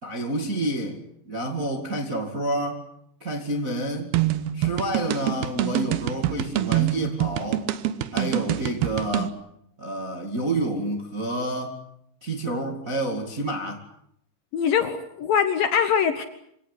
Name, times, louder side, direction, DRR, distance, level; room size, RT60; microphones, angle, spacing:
voice 1, 0.0-2.8 3.2-4.2 4.5-7.7 8.1-9.4 9.8-11.8 12.2-13.8, right 1 dB, 35° right, 1.4 m, -29 dB
sound 1, 4.1-9.3, right 13 dB, 70° right, 2.7 m, -25 dB
voice 2, 14.5-16.2, left 7 dB, 70° left, 2.4 m, -22 dB
26.5 x 17.5 x 9.9 m
omnidirectional pair, 5.3 m